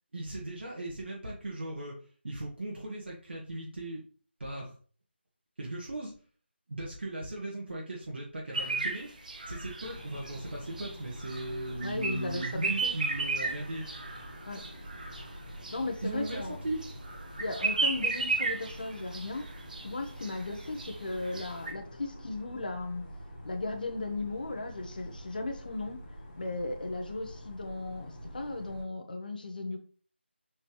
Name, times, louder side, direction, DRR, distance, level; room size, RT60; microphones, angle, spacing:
voice 1, 0.1-2.0 2.2-4.0 4.4-4.7 5.6-6.1 6.7-9.1 9.5-13.8 16.0-16.8, right 1 dB, 70° right, -3 dB, 1.9 m, -37 dB
sound 1, 8.5-21.7, right 3 dB, 45° right, 1.2 m, -35 dB
sound 2, 9.8-28.8, equal, 20° left, 2.2 m, -47 dB
voice 2, 11.8-12.9 14.5-14.6 15.7-16.7 17.4-19.5 19.8-23.0 23.4-26.0 26.4-29.8, left 2 dB, 50° left, 3 dB, 1.2 m, -36 dB
6.5 x 4.4 x 3.2 m, 0.41 s
figure-of-eight pair, 175°, 6 cm